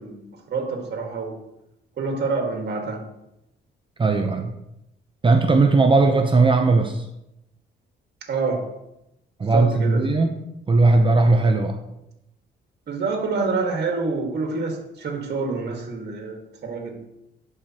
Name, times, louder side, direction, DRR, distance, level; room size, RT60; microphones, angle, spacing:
voice 1, 0.0-1.3 2.0-3.0 8.2-8.6 9.4-10.1 12.9-16.9, right 4 dB, 55° right, 2 dB, 1.7 m, -27 dB
voice 2, 4.0-4.5 5.2-7.0 9.4-10.4 10.7-11.8, right 3 dB, 25° right, 4 dB, 0.7 m, -18 dB
11.5 x 4.9 x 2.9 m, 0.87 s
cardioid pair, 90°, 20 cm